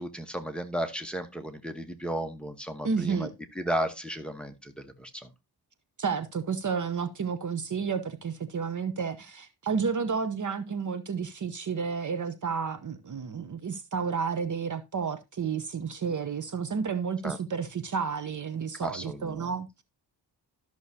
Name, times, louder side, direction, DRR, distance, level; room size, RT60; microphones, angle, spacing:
voice 1, 0.0-3.3 3.5-5.3 17.2-17.4 18.8-19.5, right 1 dB, ahead, 1.0 m, -34 dB
voice 2, 2.8-3.3 6.0-19.7, right 6 dB, 45° right, 0.8 m, -31 dB
13.0 x 6.3 x 2.7 m
wide cardioid pair, 120°, 42 cm